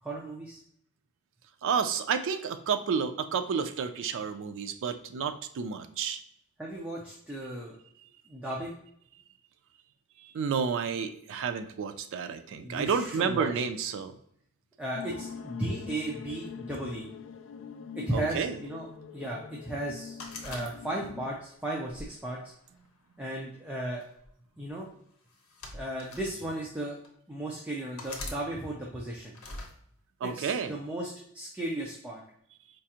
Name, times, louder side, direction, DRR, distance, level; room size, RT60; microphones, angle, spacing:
voice 1, 0.0-0.6 6.6-7.8 8.3-8.7 12.6-13.5 14.8-17.1 18.0-18.9 19.1-22.4 23.2-24.0 24.6-24.9 25.7-27.0 27.3-29.3 30.2-32.2, right 1 dB, 5° right, -4 dB, 0.5 m, -35 dB
voice 2, 1.6-6.2 10.2-14.1 18.1-18.6 30.2-30.8, right 6 dB, 60° right, 8 dB, 0.3 m, -30 dB
sound 1, 14.9-21.3, left 6 dB, 60° left, 0.3 m, -43 dB
sound 2, 20.2-21.3 21.9-23.0 24.0-24.3 25.3-26.3 27.0-27.1 28.0-28.4 29.3-29.7, left 2 dB, 85° left, 0.8 m, -42 dB
4.5 x 2.4 x 2.8 m, 0.68 s
head